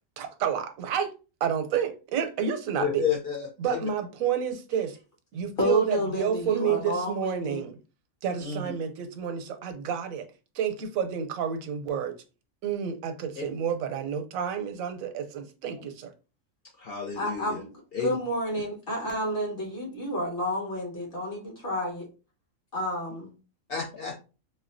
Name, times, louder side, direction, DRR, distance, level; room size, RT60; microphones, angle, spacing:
voice 1, 0.2-1.1 1.4-3.0 3.6-5.0 5.3-7.8 8.2-10.3 10.5-12.2 12.6-16.1, right 8 dB, 85° right, 1.0 m, -30 dB
voice 2, 2.8-3.8 8.4-8.7 16.8-17.6 17.9-18.2 18.5-18.6 23.7-24.2, left 7 dB, 60° left, 0.7 m, -31 dB
voice 3, 5.6-7.6 17.1-17.7 18.0-22.1 22.7-23.3, equal, 45° left, 1.5 m, -30 dB
4.0 x 2.2 x 2.5 m
omnidirectional pair, 1.4 m